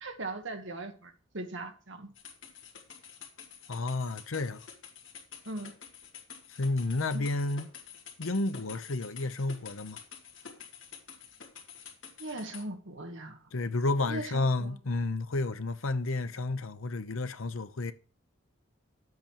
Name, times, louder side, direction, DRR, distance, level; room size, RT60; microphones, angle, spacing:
voice 1, 0.0-2.1 5.4-5.7 7.1-7.3 12.2-13.4 14.1-14.8, right 2 dB, 65° right, 1.6 m, -39 dB
sound 1, 2.2-12.6, left 7 dB, 70° left, 2.1 m, -49 dB
voice 2, 3.7-4.6 6.6-7.7 8.2-10.0 13.5-17.9, left 2 dB, 85° left, 0.9 m, -31 dB
10.5 x 8.2 x 4.7 m
head